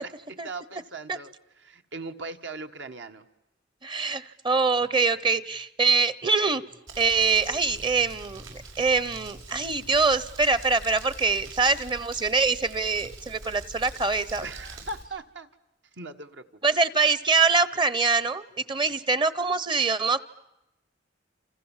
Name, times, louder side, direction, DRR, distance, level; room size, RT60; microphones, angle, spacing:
voice 1, 0.0-3.3 14.4-15.5 16.0-16.8, right 3 dB, 65° right, 6 dB, 1.7 m, -39 dB
voice 2, 3.8-6.6 7.0-14.4 16.6-20.2, right 4 dB, 25° right, 18 dB, 0.9 m, -24 dB
Crumpling crinkling, 6.9-15.0, right 3 dB, 85° right, 7.0 m, -44 dB
28.5 x 28.5 x 7.4 m, 0.94 s
head